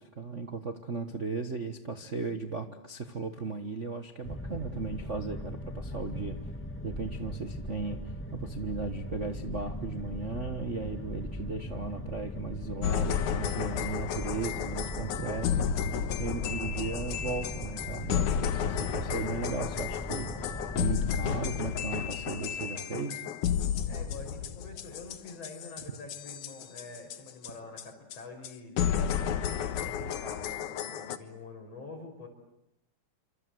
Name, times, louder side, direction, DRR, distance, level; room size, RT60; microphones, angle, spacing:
voice 1, 0.0-6.5 6.8-15.7 16.2-23.2, right 4 dB, 50° right, 6 dB, 0.9 m, -36 dB
sound 1, 4.2-21.3, left 1 dB, 10° left, 0.6 m, -39 dB
sound 2, 12.8-27.5 27.8-27.9 28.1-28.2 28.4-28.5 28.8-31.2, left 9 dB, 75° left, 2.7 m, -32 dB
voice 2, 23.9-32.3, left 3 dB, 50° left, 5 dB, 6.4 m, -46 dB
28.5 x 26.0 x 7.9 m, 0.82 s
omnidirectional pair, 3.6 m